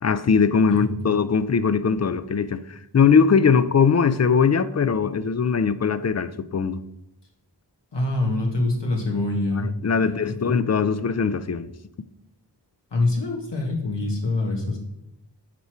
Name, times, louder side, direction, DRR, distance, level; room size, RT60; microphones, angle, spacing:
voice 1, 0.0-6.8 9.6-11.7, left 6 dB, 40° left, 0.5 m, -21 dB
voice 2, 7.9-9.7 10.0-10.2 10.4-10.6 12.9-14.8, left 2 dB, 85° left, 1.7 m, -25 dB
8.2 x 4.7 x 4.5 m
wide cardioid pair, 45°, 41 cm